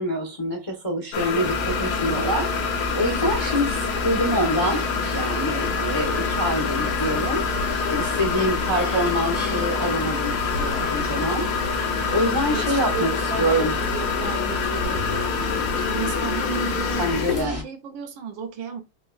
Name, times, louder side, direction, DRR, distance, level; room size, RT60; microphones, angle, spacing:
voice 1, 0.0-4.8 5.1-11.5 12.1-13.7 17.0-17.6, equal, 55° left, 0.3 m, -26 dB
sound 1, 1.1-17.5, left 6 dB, 80° left, 1.6 m, -26 dB
sound 2, 1.4-17.6, right 1 dB, 20° right, 0.4 m, -32 dB
voice 2, 12.5-18.8, right 5 dB, 70° right, 1.4 m, -33 dB
3.8 x 2.9 x 2.3 m
omnidirectional pair, 2.3 m